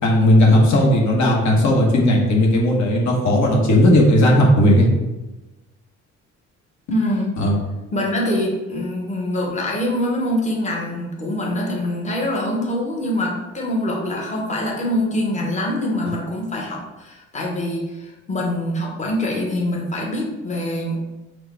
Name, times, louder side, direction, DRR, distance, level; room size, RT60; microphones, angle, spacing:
voice 1, 0.0-4.9 7.4-7.5, left 1 dB, 70° left, -1 dB, 1.1 m, -15 dB
voice 2, 6.9-7.4 7.9-21.0, left 1 dB, 25° left, -2 dB, 1.0 m, -24 dB
4.6 x 2.3 x 4.3 m, 1.1 s
cardioid pair, 90°, 30 cm